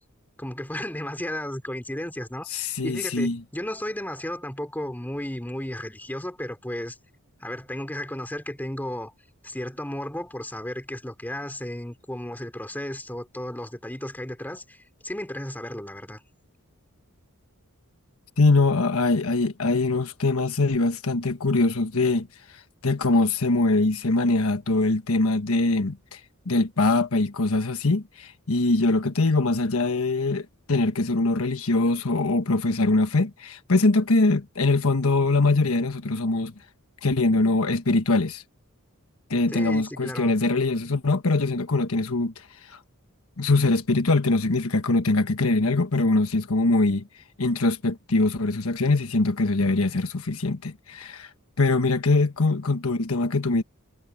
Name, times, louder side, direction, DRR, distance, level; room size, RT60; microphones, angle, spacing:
voice 1, 0.4-7.0 7.4-9.1 9.4-16.2 39.5-40.3, left 1 dB, 10° left, 3.2 m, -34 dB
voice 2, 2.5-3.4 18.4-26.2 26.4-36.5 37.0-38.4 39.3-42.8 43.4-47.0 47.4-51.3 51.6-53.6, left 2 dB, 70° left, 1.3 m, -23 dB
head